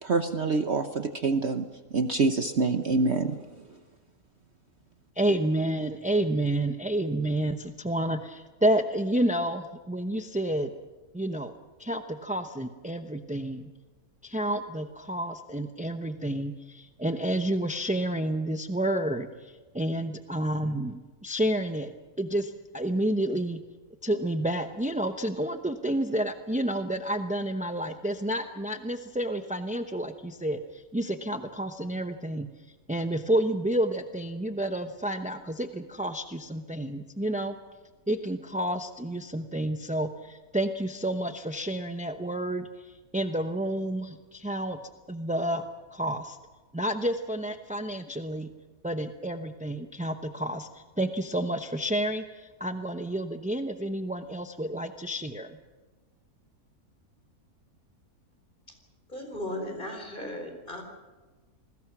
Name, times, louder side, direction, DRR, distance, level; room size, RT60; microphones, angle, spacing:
voice 1, 0.0-3.4, right 3 dB, 50° right, 8 dB, 1.1 m, -26 dB
voice 2, 5.2-10.7 11.1-11.5 11.8-13.7 14.2-23.6 24.0-32.5 32.9-37.5 38.1-44.8 45.1-45.6 45.9-46.4 46.7-48.5 48.8-55.6, right 1 dB, 10° right, 7 dB, 0.5 m, -30 dB
voice 3, 59.1-60.8, left 1 dB, 30° left, 4 dB, 4.4 m, -36 dB
29.0 x 20.5 x 6.0 m, 1.3 s
omnidirectional pair, 1.7 m